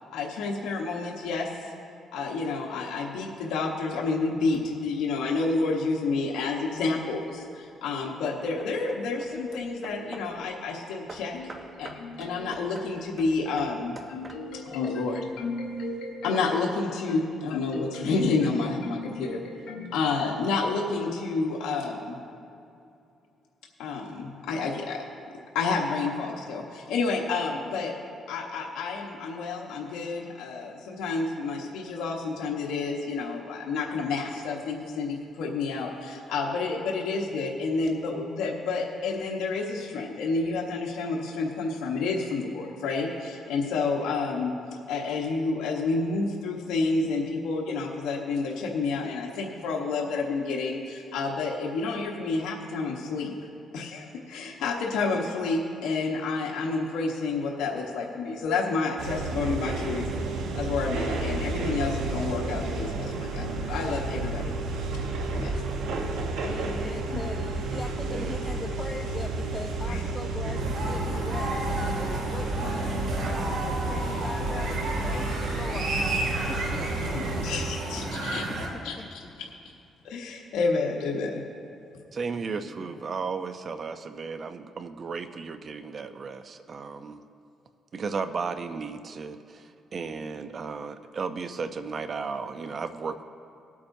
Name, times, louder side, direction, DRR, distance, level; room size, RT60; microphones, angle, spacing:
voice 1, 0.0-1.5 2.1-22.2 23.8-25.0 25.5-27.9 28.3-44.5 44.9-53.3 53.7-60.0 60.5-64.5 65.3-65.6 67.1-67.2 69.9-70.0 77.1-78.4 78.8-78.9 79.4-79.5 80.0-81.4, left 3 dB, 90° left, -1 dB, 1.1 m, -29 dB
Hammer / Wood, 6.9-7.4 8.0-10.4 11.1-14.7, right 2 dB, 25° right, 1.0 m, -46 dB
sound 1, 59.0-77.7, right 2 dB, 85° right, 1.1 m, -31 dB
voice 2, 66.4-71.7 72.0-73.2 73.4-75.9 76.5-76.9 77.1-77.5 77.8-77.9 78.3-79.3 82.3-83.2, left 3 dB, 25° left, 2 dB, 0.7 m, -40 dB
voice 3, 68.0-68.4 82.1-87.2 87.9-93.2, right 5 dB, 45° right, 10 dB, 0.6 m, -34 dB
sound 2, 70.6-78.7, right 1 dB, 65° right, 2.3 m, -32 dB
19.5 x 8.5 x 2.7 m, 2.6 s
cardioid pair, 90°, 0 cm